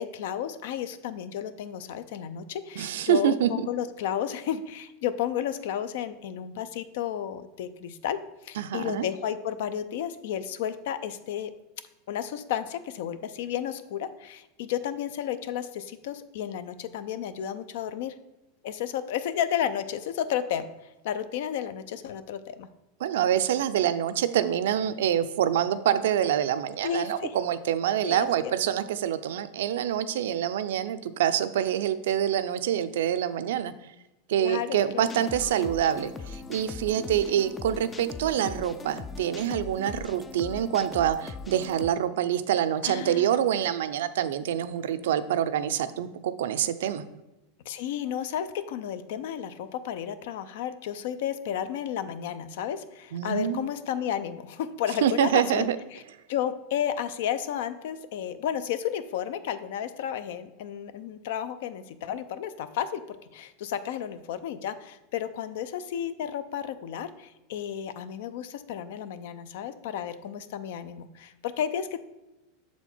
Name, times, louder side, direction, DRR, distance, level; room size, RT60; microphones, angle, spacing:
voice 1, 0.0-8.2 8.4-11.5 12.1-18.1 18.6-20.7 21.0-22.7 26.8-27.4 28.0-28.5 34.4-35.1 42.8-43.3 47.7-56.0 56.3-63.0 63.3-72.0, left 9 dB, 70° left, 13 dB, 0.5 m, -32 dB
voice 2, 2.8-3.7 8.6-9.1 23.0-33.7 34.3-47.0 53.1-53.7 55.0-55.8, right 10 dB, 80° right, 12 dB, 0.4 m, -26 dB
sound 1, 35.0-41.9, left 4 dB, 15° left, 0.3 m, -40 dB
6.9 x 4.3 x 4.4 m, 1.0 s
supercardioid pair, 140°, 0 cm